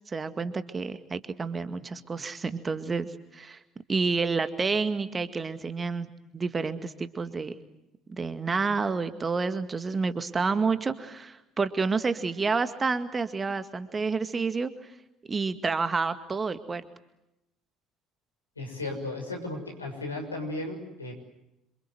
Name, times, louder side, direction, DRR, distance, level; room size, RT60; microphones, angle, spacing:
voice 1, 0.1-3.6 3.9-7.5 8.1-14.7 15.3-16.8, right 4 dB, 25° right, 10 dB, 2.0 m, -29 dB
voice 2, 18.6-21.1, left 2 dB, 85° left, 2 dB, 6.3 m, -35 dB
28.0 x 27.0 x 7.8 m, 0.87 s
figure-of-eight pair, 55°, 0 cm